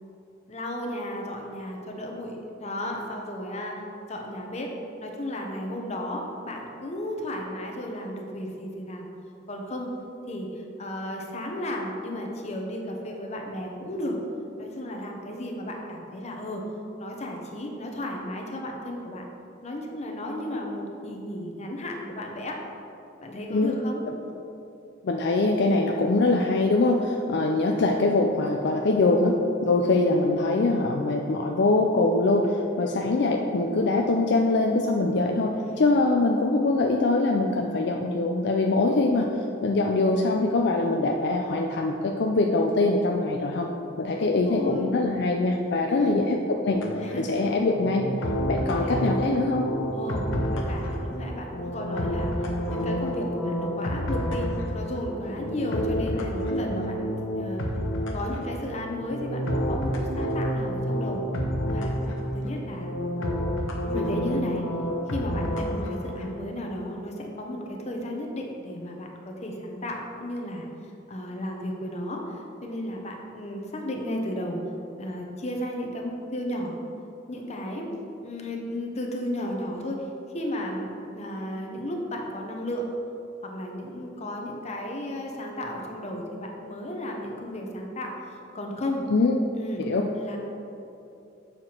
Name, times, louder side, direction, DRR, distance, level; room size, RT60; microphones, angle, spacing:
voice 1, 0.5-3.8 4.1-4.7 5.0-9.1 9.5-9.9 10.3-14.2 14.6-16.7 17.0-19.2 19.6-22.6 23.2-24.0 35.6-35.8 44.2-44.9 45.9-46.3 47.0-47.5 48.6-49.1 49.9-57.6 58.1-61.2 61.6-61.9 62.3-62.9 63.9-64.6 65.1-70.6 71.1-74.6 75.0-76.8 77.3-77.9 78.2-80.0 80.3-82.9 83.4-88.1 88.5-89.1 89.5-89.9 90.1-90.4, left 1 dB, 35° left, 1 dB, 0.9 m, -34 dB
voice 2, 25.0-29.4 29.6-43.7 44.0-46.8 47.2-48.1 48.5-49.7 89.1-89.4 89.8-90.0, left 2 dB, 60° left, 1 dB, 0.4 m, -23 dB
sound 1, 46.7-66.3, equal, 90° left, 0.9 m, -29 dB
6.8 x 5.8 x 4.4 m, 2.7 s
head